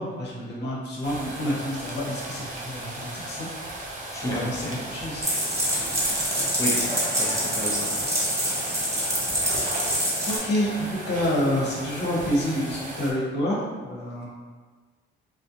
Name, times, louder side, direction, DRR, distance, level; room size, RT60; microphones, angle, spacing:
voice 1, 0.0-3.5 4.2-5.2 10.3-14.2, left 1 dB, 60° left, -4 dB, 0.8 m, -28 dB
sound 1, 1.0-13.1, right 1 dB, 40° right, 0.6 m, -36 dB
voice 2, 4.1-4.8 5.7-7.9, equal, 15° left, -3 dB, 0.5 m, -33 dB
sound 2, 5.2-10.4, equal, 15° right, 1.0 m, -26 dB
2.4 x 2.1 x 2.8 m, 1.4 s
cardioid pair, 90°, 20 cm